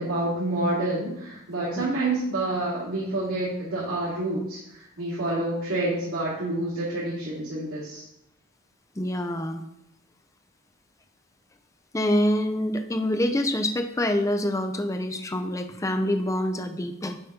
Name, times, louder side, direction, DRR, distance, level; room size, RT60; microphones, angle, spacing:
voice 1, 0.0-8.0, right 2 dB, 80° right, -12 dB, 2.9 m, -28 dB
voice 2, 9.0-9.6 11.9-17.2, left 1 dB, 15° left, 6 dB, 0.5 m, -26 dB
8.0 x 4.2 x 5.1 m, 0.78 s
head